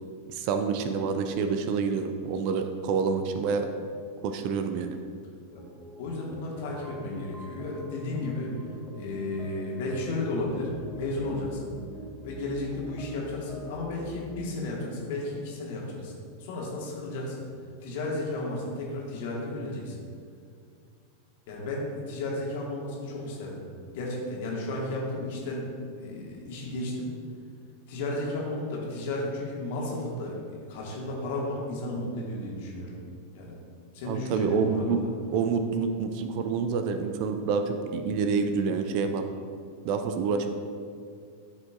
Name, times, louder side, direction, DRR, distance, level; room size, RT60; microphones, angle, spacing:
voice 1, 0.3-3.7 4.2-5.0 34.0-35.0 35.3-39.3 39.8-40.5, right 5 dB, 45° right, 7 dB, 0.5 m, -27 dB
sound 1, 5.5-14.5, equal, 5° right, 0.8 m, -45 dB
voice 2, 6.0-8.6 8.9-11.7 12.2-16.1 16.4-17.4 17.8-20.0 21.5-23.6 23.9-25.7 26.0-27.1 27.9-32.9 33.3-33.6 33.9-35.1, left 2 dB, 50° left, -3 dB, 1.9 m, -33 dB
13.5 x 5.2 x 2.5 m, 2.2 s
figure-of-eight pair, 90°, 0 cm